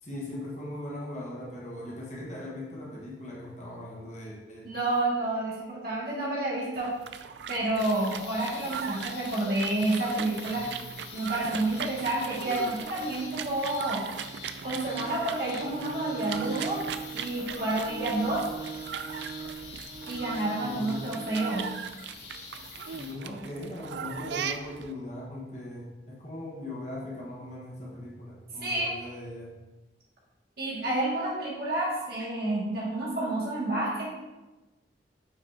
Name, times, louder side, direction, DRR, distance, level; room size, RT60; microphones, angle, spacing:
voice 1, 0.0-4.7 20.6-21.2 22.9-29.6, left 1 dB, 40° left, -4 dB, 1.4 m, -39 dB
voice 2, 4.6-6.9 7.5-10.7 11.1-14.0 14.6-16.8 17.1-18.5 20.1-21.7 28.6-28.9 30.6-34.1, right 2 dB, 55° right, -5 dB, 2.1 m, -29 dB
sound 1, 6.8-24.9, right 7 dB, 70° right, 0.4 m, -39 dB
sound 2, 7.8-23.1, left 5 dB, 70° left, 0.9 m, -46 dB
Bowed string instrument, 14.8-21.9, right 5 dB, 30° right, 0.7 m, -41 dB
6.9 x 5.8 x 2.8 m, 1.1 s
head